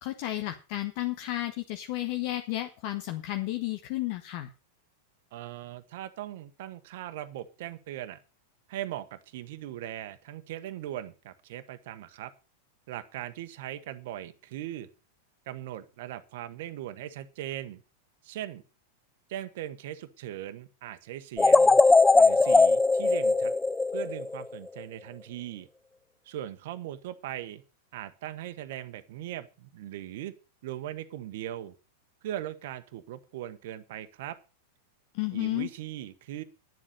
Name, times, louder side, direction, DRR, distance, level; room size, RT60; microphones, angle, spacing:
voice 1, 0.0-4.5 35.1-35.7, left 16 dB, 50° left, 6 dB, 1.1 m, -32 dB
voice 2, 5.3-8.2 8.7-12.3 12.9-14.9 15.5-17.8 18.2-18.6 19.3-21.8 22.2-23.5 23.9-25.7 26.2-27.6 27.9-30.3 30.6-31.7 32.2-34.4 35.3-36.4, right 12 dB, 60° right, 10 dB, 1.1 m, -39 dB
sound 1, 21.4-24.6, left 3 dB, 10° left, 0.5 m, -20 dB
11.0 x 7.5 x 6.5 m, 0.34 s
figure-of-eight pair, 95°, 0 cm